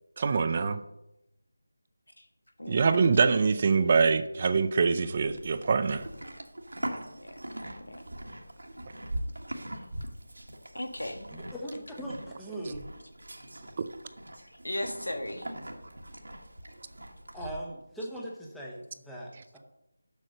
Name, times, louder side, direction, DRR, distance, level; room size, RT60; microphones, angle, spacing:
voice 1, 0.2-0.8 2.7-6.0 13.8-13.9, right 5 dB, 35° right, 11 dB, 0.5 m, -24 dB
Livestock farm animals working animals, 5.1-17.5, right 1 dB, 85° right, 1.6 m, -41 dB
voice 2, 10.7-11.3 14.4-15.5, left 1 dB, 85° left, 6 dB, 1.6 m, -37 dB
voice 3, 11.3-12.9 17.3-19.6, right 1 dB, ahead, -4 dB, 1.1 m, -40 dB
7.6 x 6.4 x 6.5 m, 0.88 s
figure-of-eight pair, 165°, 0 cm